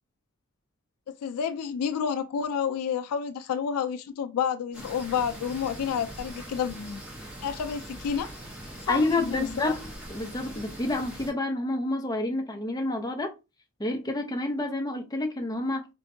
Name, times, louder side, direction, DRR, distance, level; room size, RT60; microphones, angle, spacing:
voice 1, 1.2-7.0 7.4-8.3 8.9-9.7, left 7 dB, 90° left, 0.3 m, -30 dB
sound 1, 4.7-11.3, right 1 dB, 5° right, 1.0 m, -42 dB
voice 2, 8.9-9.8 10.1-13.3 13.8-15.9, left 2 dB, 15° left, 0.5 m, -29 dB
4.2 x 2.6 x 2.6 m
head